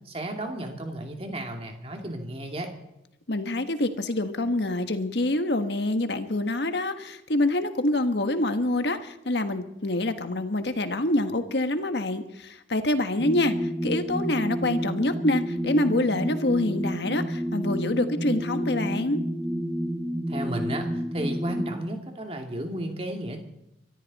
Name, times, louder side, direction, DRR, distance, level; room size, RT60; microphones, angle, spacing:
voice 1, 0.0-2.7 20.3-23.4, right 1 dB, 35° right, 3 dB, 2.5 m, -33 dB
voice 2, 3.3-19.2, left 1 dB, 70° left, 8 dB, 1.4 m, -26 dB
sound 1, 13.2-21.7, equal, 5° right, 1.2 m, -30 dB
24.0 x 14.0 x 4.2 m, 0.87 s
head